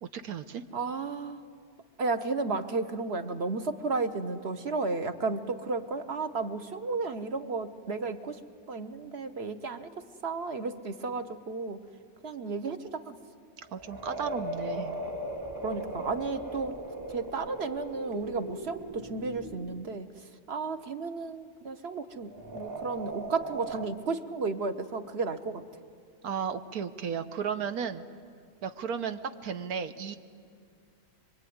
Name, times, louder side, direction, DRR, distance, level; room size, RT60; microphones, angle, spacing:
voice 1, 0.0-0.6 13.7-14.9 26.2-28.0 28.6-30.2, right 7 dB, 90° right, 10 dB, 1.5 m, -34 dB
voice 2, 0.7-1.4 2.0-8.4 8.7-9.9 10.2-11.8 12.2-13.2 15.6-16.7 17.1-20.1 20.5-25.6, right 3 dB, 50° right, 9 dB, 1.3 m, -33 dB
sound 1, 13.6-19.9 22.2-23.9, right 1 dB, 15° right, 1.4 m, -38 dB
24.5 x 24.0 x 9.6 m, 2.2 s
omnidirectional pair, 1.5 m